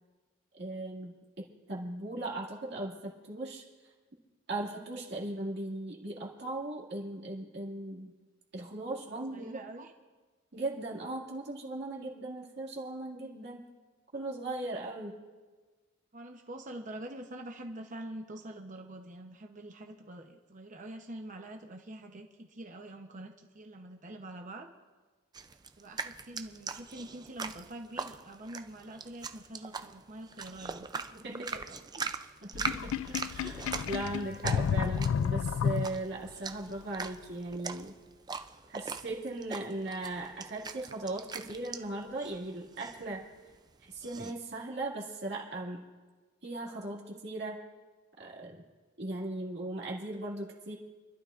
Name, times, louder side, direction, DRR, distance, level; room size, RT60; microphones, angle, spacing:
voice 1, 0.6-3.6 4.5-8.1 8.5-9.6 10.5-13.6 14.1-15.2 31.1-31.6 32.4-32.8 33.0-37.9 38.7-43.2 43.8-45.9 46.4-47.6 48.2-48.6 49.0-50.7, right 2 dB, 55° right, -3 dB, 2.2 m, -38 dB
voice 2, 9.1-9.9 16.1-24.7 25.8-32.1, right 1 dB, 40° right, 3 dB, 0.9 m, -45 dB
sound 1, 25.3-44.3, right 4 dB, 20° right, 0.4 m, -42 dB
Sink (filling or washing), 32.5-36.3, left 7 dB, 80° left, 0.3 m, -31 dB
28.5 x 12.0 x 2.5 m, 1.3 s
head